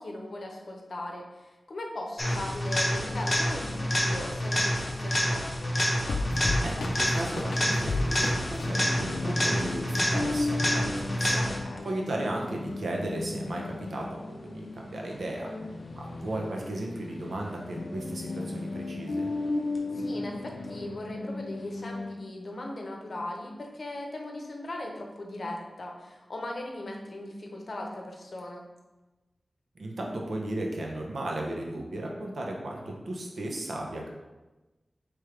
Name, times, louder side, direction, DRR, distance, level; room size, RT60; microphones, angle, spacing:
voice 1, 0.0-5.8 11.4-11.9 15.4-15.7 19.9-28.7, left 1 dB, 60° left, 1 dB, 0.8 m, -38 dB
sound 1, 2.2-11.8 19.8-19.9, equal, 35° left, 0.8 m, -28 dB
sound 2, 6.1-22.2, left 2 dB, 80° left, 0.4 m, -35 dB
voice 2, 6.6-11.4 11.8-15.5 16.0-19.3 29.7-34.1, right 1 dB, 85° right, -1 dB, 0.8 m, -35 dB
4.9 x 3.2 x 3.2 m, 1.1 s
wide cardioid pair, 80°, 0 cm